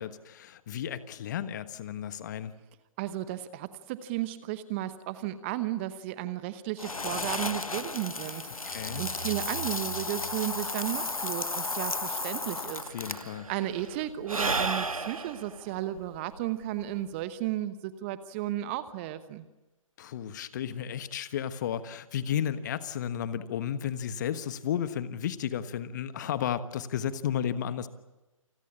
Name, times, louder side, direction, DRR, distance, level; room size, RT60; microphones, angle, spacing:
voice 1, 0.0-2.5 8.6-9.0 12.9-13.5 20.0-27.9, left 9 dB, 35° left, 13 dB, 1.3 m, -33 dB
voice 2, 3.0-8.6 9.0-19.4, right 13 dB, 20° right, 13 dB, 1.0 m, -34 dB
sound 1, 6.8-13.4, left 3 dB, 85° left, 1.5 m, -34 dB
sound 2, 8.7-11.6, right 9 dB, 45° right, 1.8 m, -45 dB
Sigh / Breathing, 12.2-12.3 12.5-17.2, right 3 dB, 85° right, 1.6 m, -34 dB
28.5 x 20.5 x 8.4 m, 1.1 s
figure-of-eight pair, 140°, 18 cm